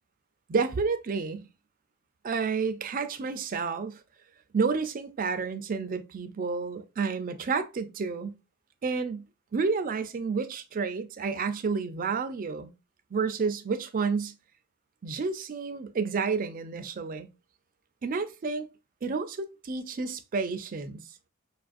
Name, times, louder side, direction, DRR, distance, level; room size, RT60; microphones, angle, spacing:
voice 1, 0.5-1.5 2.2-4.0 4.5-8.4 8.8-9.3 9.5-12.7 13.1-14.3 15.0-17.3 18.0-18.7 19.0-21.0, right 5 dB, 40° right, 0.4 m, -30 dB
5.2 x 2.5 x 2.5 m
head